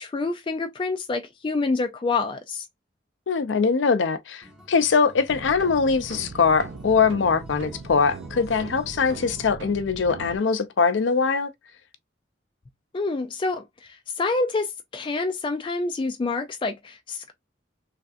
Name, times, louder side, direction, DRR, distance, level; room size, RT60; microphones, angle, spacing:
voice 1, 0.0-2.6 12.9-13.6 14.2-17.3, left 3 dB, 30° left, 0.3 m, -27 dB
voice 2, 3.3-11.5, left 5 dB, 90° left, 0.5 m, -22 dB
Acoustic guitar, 4.4-9.5, left 1 dB, 5° right, 1.1 m, -49 dB
sound 1, 5.3-10.4, right 3 dB, 75° right, 0.4 m, -39 dB
3.2 x 2.5 x 2.5 m
head